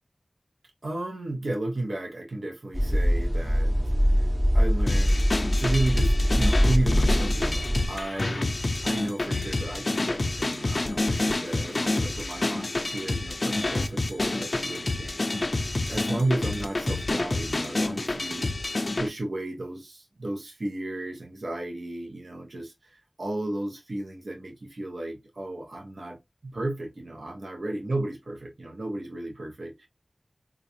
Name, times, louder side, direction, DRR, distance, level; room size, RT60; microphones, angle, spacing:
voice 1, 0.8-5.2 5.6-8.5 8.8-18.5 19.0-29.9, right 2 dB, 85° right, 0.9 m, -33 dB
sound 1, 2.7-7.9, equal, 50° right, 1.1 m, -23 dB
sound 2, 4.9-19.1, left 2 dB, 60° left, 0.4 m, -28 dB
3.8 x 2.4 x 2.7 m
wide cardioid pair, 45°, 0 cm